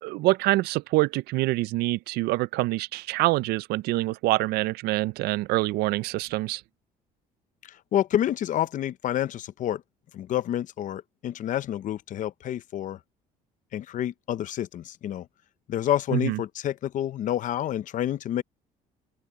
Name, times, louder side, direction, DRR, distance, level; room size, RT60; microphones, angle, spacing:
voice 1, 0.0-6.6 16.1-16.4, right 19 dB, 80° right, 0.4 m, -25 dB
voice 2, 7.6-9.8 10.1-13.0 13.7-15.3 15.7-18.4, left 11 dB, 55° left, 0.8 m, -28 dB
open air
cardioid pair, 120°, 16 cm